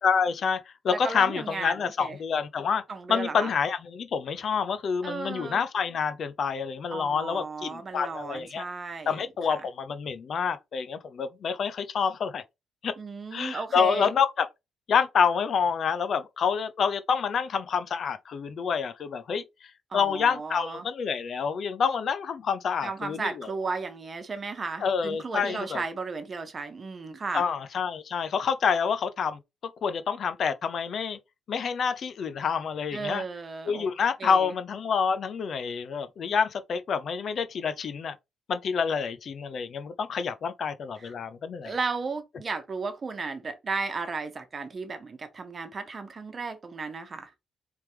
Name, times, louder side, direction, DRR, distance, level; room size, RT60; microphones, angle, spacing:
voice 1, 0.0-2.8 3.1-8.6 9.1-12.4 12.8-12.9 13.3-14.5 14.9-19.4 19.9-23.5 24.8-25.8 27.3-29.4 29.8-31.2 31.5-33.2 33.7-38.1 38.5-41.7, left 6 dB, 55° left, 0.6 m, -27 dB
voice 2, 0.9-2.2 2.9-3.5 5.0-5.6 6.9-9.2 9.5-9.6 13.0-14.1 19.9-20.9 22.8-27.4 32.9-33.9 34.2-34.5 41.0-41.1 41.6-47.3, right 4 dB, 35° right, 1.1 m, -34 dB
4.5 x 3.5 x 3.3 m
cardioid pair, 90°, 0 cm